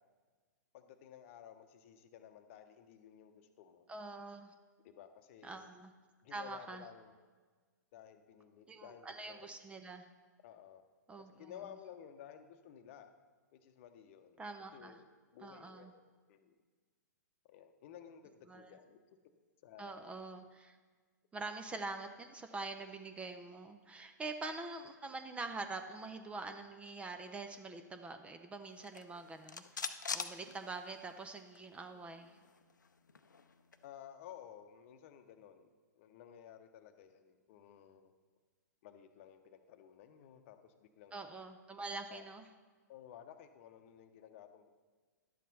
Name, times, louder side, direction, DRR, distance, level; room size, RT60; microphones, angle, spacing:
voice 1, 0.7-3.9 4.8-5.7 6.2-7.1 7.9-9.5 10.4-10.8 11.2-13.1 13.5-14.4 14.7-15.1 15.3-16.6 17.4-19.0 19.6-20.2 33.8-38.1 38.8-41.3 42.1-42.3 42.9-44.7, left 9 dB, 45° left, 8 dB, 0.8 m, -55 dB
voice 2, 3.9-4.5 5.4-5.9 6.3-6.8 8.7-10.1 11.1-11.5 14.4-14.9 15.4-15.9 18.5-18.7 19.8-20.8 21.3-32.4 41.1-42.4, right 3 dB, 10° right, 7 dB, 0.5 m, -45 dB
sound 1, 28.8-31.2 31.6-31.7 31.9-33.9, left 5 dB, 85° left, 0.5 m, -44 dB
11.0 x 7.4 x 4.0 m, 1.4 s
figure-of-eight pair, 110°, 10 cm